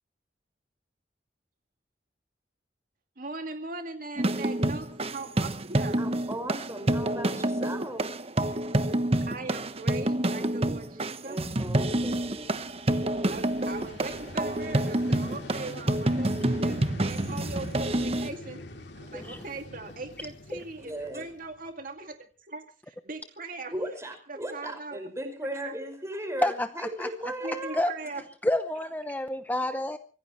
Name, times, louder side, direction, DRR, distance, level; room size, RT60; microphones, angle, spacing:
voice 1, 3.2-6.0 9.3-11.4 13.2-16.3 16.6-18.6 19.0-23.7 24.3-25.0 25.6-25.7 27.4-28.2, right 3 dB, 50° right, 5 dB, 2.2 m, -40 dB
sound 1, 4.2-18.3, right 1 dB, 35° right, 1.2 m, -28 dB
voice 2, 6.0-8.1 10.4-10.8 11.2-12.7 20.8-21.3 23.7-27.8, right 1 dB, 15° right, 6 dB, 5.5 m, -37 dB
Vehicle, 12.9-21.8, left 1 dB, 75° left, 2.6 m, -44 dB
voice 3, 19.1-19.4 26.4-27.1 27.7-27.9 28.4-30.0, left 1 dB, 10° left, 9 dB, 0.8 m, -29 dB
25.0 x 16.5 x 3.1 m, 0.37 s
head